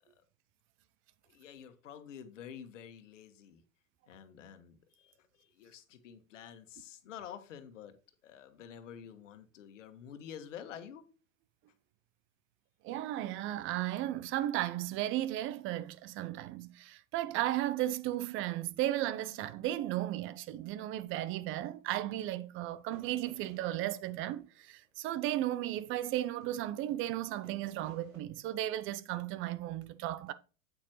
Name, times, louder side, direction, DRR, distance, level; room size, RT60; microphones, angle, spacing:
voice 1, 1.3-3.6 4.1-7.9 8.2-11.0, left 8 dB, 60° left, 1.6 m, -49 dB
voice 2, 12.8-30.3, right 14 dB, 30° right, 0.7 m, -35 dB
sound 1, 22.9-26.1 26.4-28.2, right 3 dB, 85° right, 3.1 m, -58 dB
8.8 x 8.6 x 3.1 m
figure-of-eight pair, 100°, 41 cm